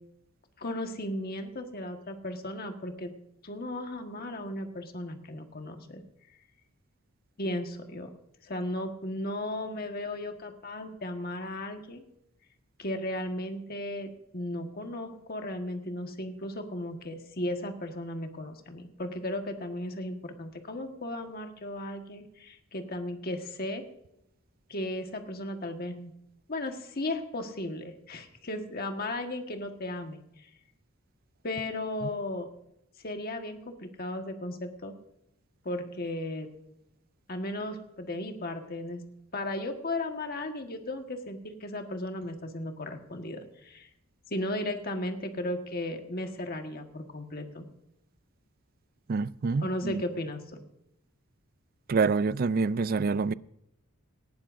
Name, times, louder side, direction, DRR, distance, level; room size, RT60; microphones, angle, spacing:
voice 1, 0.6-3.1 3.4-6.0 7.4-8.1 8.4-12.0 12.8-23.8 24.7-26.1 26.5-30.5 31.4-32.5 33.0-35.0 35.6-36.5 37.3-39.0 39.3-43.9 44.3-47.6 49.6-50.4, left 1 dB, 45° left, 1.5 m, -35 dB
voice 2, 49.1-50.0 51.9-53.3, right 4 dB, 45° right, 0.4 m, -27 dB
19.0 x 15.0 x 2.6 m
head